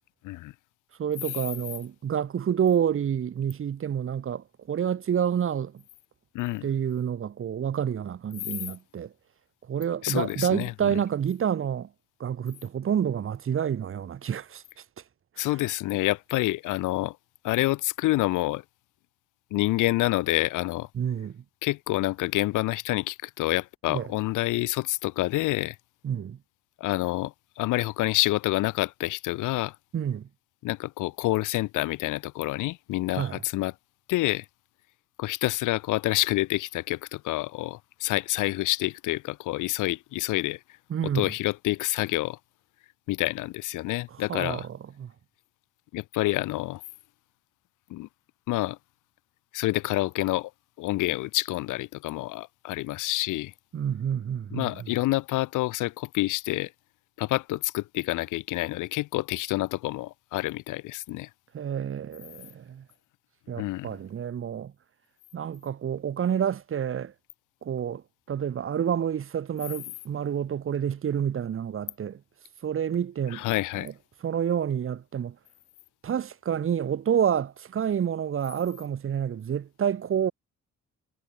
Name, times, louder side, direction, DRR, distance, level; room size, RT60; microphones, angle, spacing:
voice 1, 1.0-5.8 6.6-9.1 9.7-11.9 12.2-14.6 15.4-15.5 20.9-21.4 23.9-24.1 26.0-26.4 29.9-30.3 33.1-33.4 40.9-41.3 44.1-45.1 53.7-54.9 61.5-62.8 63.5-64.7 65.3-67.1 67.6-68.0 68.3-72.2 72.6-73.4 73.7-73.9 74.2-75.4 76.0-80.3, right 8 dB, 45° right, 1.1 m, -28 dB
voice 2, 6.3-6.7 10.0-10.7 15.4-17.2 17.4-18.6 19.5-20.9 21.6-25.8 26.8-29.7 30.6-33.7 34.1-34.4 35.2-40.6 41.1-42.4 43.1-44.7 45.9-46.8 47.9-48.1 48.5-48.8 49.5-50.5 50.8-53.5 54.5-56.7 57.2-61.3 63.6-63.9 73.3-73.9, left 18 dB, 85° left, 0.7 m, -28 dB
cardioid pair, 90°, 30 cm